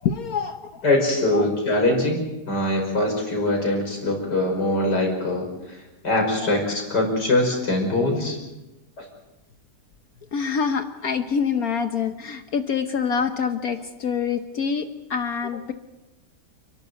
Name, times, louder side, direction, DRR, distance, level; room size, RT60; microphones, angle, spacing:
voice 1, 0.0-0.8 1.3-1.5 6.4-6.5 10.3-15.7, left 6 dB, 60° left, 8 dB, 1.4 m, -26 dB
voice 2, 0.8-5.8 6.0-8.4 9.0-9.1, left 2 dB, 80° left, 2 dB, 6.1 m, -23 dB
30.0 x 12.0 x 9.3 m, 1.0 s
omnidirectional pair, 1.8 m